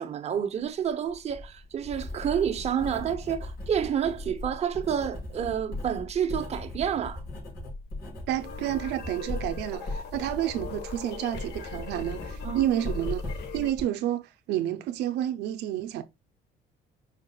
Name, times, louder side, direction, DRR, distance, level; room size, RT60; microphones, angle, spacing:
voice 1, 0.0-7.2 12.4-12.7, right 8 dB, 40° right, 0.7 m, -29 dB
Writing, 1.1-13.8, left 2 dB, 65° left, 3.2 m, -38 dB
voice 2, 8.3-16.0, right 12 dB, 80° right, 0.5 m, -30 dB
sound 1, 8.4-13.7, left 7 dB, 80° left, 1.1 m, -42 dB
4.9 x 4.6 x 2.3 m
cardioid pair, 110°, 17 cm